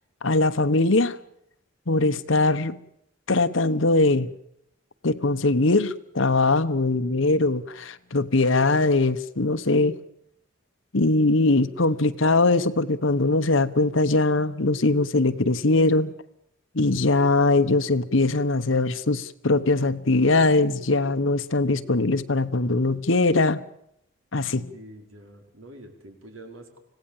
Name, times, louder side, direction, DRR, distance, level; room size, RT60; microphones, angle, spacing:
voice 1, 0.2-1.2 1.9-2.8 3.3-4.3 5.0-10.0 10.9-16.1 16.7-23.6 24.3-24.7, left 2 dB, 75° left, 1.1 m, -21 dB
voice 2, 24.7-26.8, right 1 dB, 85° right, 4.8 m, -45 dB
26.0 x 17.0 x 7.4 m
head